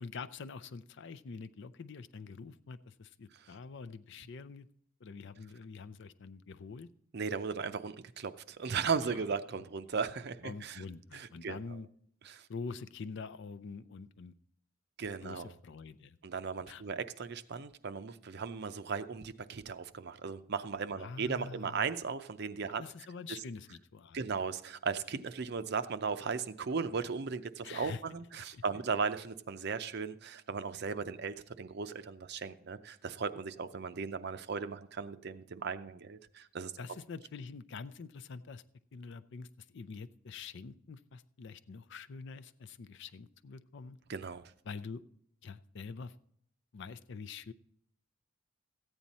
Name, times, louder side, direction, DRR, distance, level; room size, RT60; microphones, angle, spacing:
voice 1, 0.0-4.7 5.0-6.9 9.0-9.2 10.4-11.9 12.5-14.3 15.2-16.2 16.7-16.8 21.0-21.9 22.8-24.3 27.6-28.0 28.3-28.6 36.8-38.6 38.9-44.0 44.7-45.0 45.4-46.1 46.7-47.5, left 4 dB, 60° left, 12 dB, 0.5 m, -45 dB
voice 2, 7.1-10.8 11.1-11.6 12.3-12.5 15.0-15.5 16.2-22.8 24.1-36.7 44.1-44.4, right 5 dB, 55° right, 12 dB, 0.5 m, -37 dB
14.0 x 8.9 x 4.1 m, 0.67 s
head